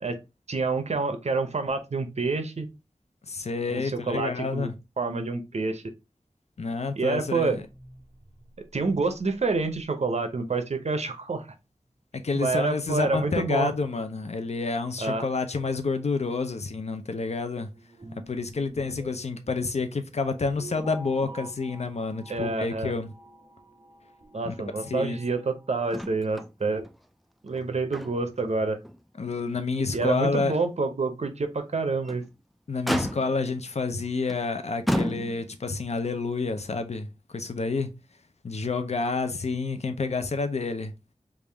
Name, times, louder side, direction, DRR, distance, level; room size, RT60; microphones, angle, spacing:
voice 1, 0.5-2.7 3.7-5.8 7.0-7.6 8.7-11.5 12.3-13.7 15.0-15.3 22.3-22.9 24.3-26.8 27.4-28.8 29.9-32.2, right 3 dB, 70° right, 0.6 m, -28 dB
voice 2, 3.3-4.7 6.6-7.6 12.1-17.7 18.3-23.1 24.4-24.5 24.8-25.2 29.2-30.6 32.7-37.9 38.4-40.9, left 4 dB, 70° left, 0.5 m, -29 dB
sound 1, 7.4-10.0 10.4-10.5 10.8-10.9 16.6-16.7 16.9-17.1 17.7-26.2, right 1 dB, 50° right, 1.4 m, -49 dB
Motor vehicle (road), 25.9-26.5 26.8-27.0 27.5-28.4 28.8-29.0 29.5-29.6 31.8-32.3 32.9-33.5 34.3-34.5 34.9-35.7 36.7-36.8, equal, ahead, 0.3 m, -31 dB
3.4 x 2.5 x 3.3 m
wide cardioid pair, 60°, 12 cm